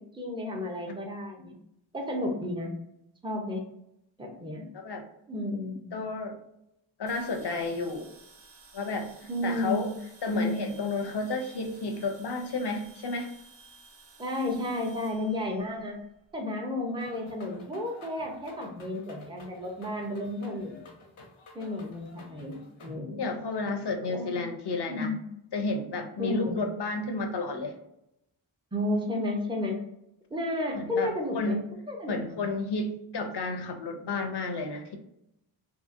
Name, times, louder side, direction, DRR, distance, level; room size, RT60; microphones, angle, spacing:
voice 1, 0.1-1.6 1.9-2.7 3.2-3.6 4.2-4.6 5.3-5.9 9.3-10.0 10.3-10.8 14.2-16.0 16.3-20.8 21.5-23.2 24.1-24.5 24.8-25.3 26.2-26.6 28.7-29.8 30.3-31.6 31.9-32.4, left 1 dB, 10° right, 0 dB, 0.6 m, -32 dB
voice 2, 5.9-6.4 7.0-8.2 8.7-9.1 9.4-9.9 10.2-13.3 23.2-25.1 25.5-27.7 30.7-31.7 32.1-35.0, left 3 dB, 55° left, 5 dB, 0.6 m, -32 dB
sound 1, 7.1-16.3, right 3 dB, 60° right, 0.8 m, -54 dB
sound 2, 17.0-23.0, left 2 dB, 85° left, 0.8 m, -51 dB
2.7 x 2.7 x 2.6 m, 0.80 s
wide cardioid pair, 85°, 48 cm